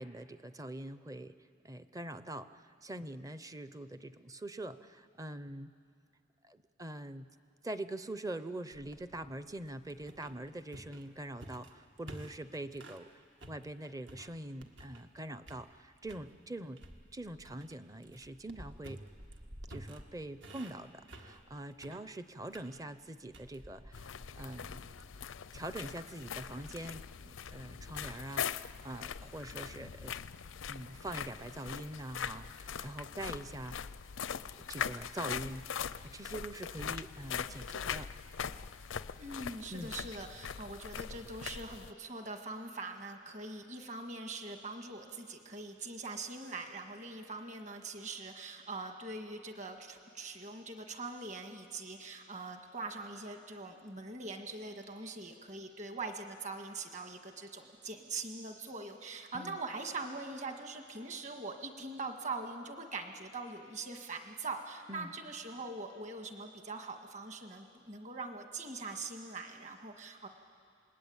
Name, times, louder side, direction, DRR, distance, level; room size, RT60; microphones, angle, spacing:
voice 1, 0.0-1.4 1.6-5.7 6.4-7.3 7.6-13.1 13.5-16.8 17.1-19.0 19.7-24.9 25.5-30.2 30.7-33.8 34.7-35.7 36.0-38.1 39.7-39.9 59.3-59.6 64.9-65.1, right 1 dB, 15° right, 12 dB, 0.6 m, -44 dB
sound 1, 8.7-13.1 13.4-15.2 15.4-16.3 16.8-27.2, right 1 dB, 70° right, 1.8 m, -53 dB
sound 2, 23.9-41.9, left 7 dB, 90° left, 0.6 m, -41 dB
voice 2, 39.2-70.3, right 3 dB, 40° right, 5 dB, 1.8 m, -42 dB
28.5 x 20.5 x 8.7 m, 2.3 s
head